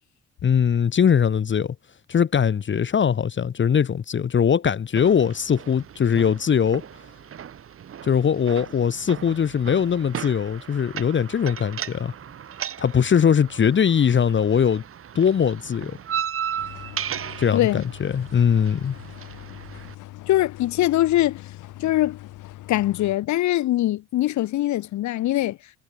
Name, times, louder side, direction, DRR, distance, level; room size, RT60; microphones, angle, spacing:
voice 1, 0.4-1.7 2.1-6.8 8.0-12.1 12.8-14.8 15.1-16.0 17.4-19.0, left 7 dB, 40° left, 1.0 m, -21 dB
sound 1, 5.0-20.0, right 9 dB, 45° right, 1.1 m, -36 dB
sound 2, 16.6-23.2, left 16 dB, 85° left, 2.2 m, -42 dB
voice 2, 17.5-17.8 20.3-21.5 21.8-22.2 22.7-25.6, left 15 dB, 70° left, 0.7 m, -22 dB
cardioid pair, 90°, 30 cm